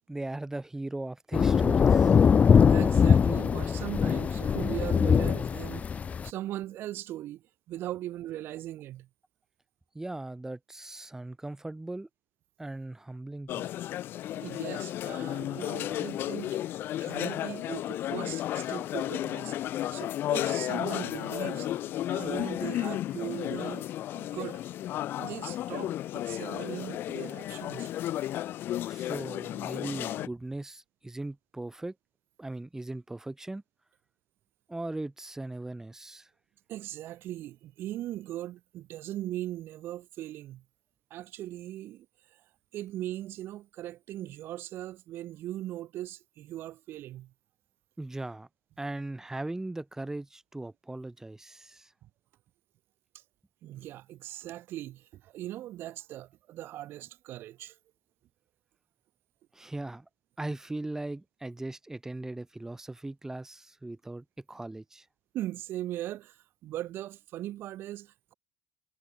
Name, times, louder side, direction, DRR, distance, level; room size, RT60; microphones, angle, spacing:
voice 1, 0.1-2.2 9.9-12.1 12.6-13.7 28.9-31.9 32.4-33.6 34.7-36.3 48.0-48.5 48.8-51.9 59.5-60.0 60.4-65.1, right 2 dB, 10° right, 4.4 m, -38 dB
sound 1, 1.3-6.3, left 6 dB, 30° left, 0.9 m, -22 dB
voice 2, 2.7-5.9 6.2-9.1 14.3-16.6 17.0-21.7 22.1-23.8 24.1-24.6 25.2-27.9 28.2-28.3 36.7-40.6 41.1-42.1 42.3-42.4 42.7-47.3 52.0-52.1 53.1-53.2 53.6-57.8 65.3-68.3, right 14 dB, 50° right, 5.5 m, -39 dB
sound 2, 13.5-30.3, left 13 dB, 50° left, 1.7 m, -33 dB
Acoustic guitar / Strum, 20.8-25.1, right 7 dB, 80° right, 6.8 m, -54 dB
figure-of-eight pair, 60°, 5 cm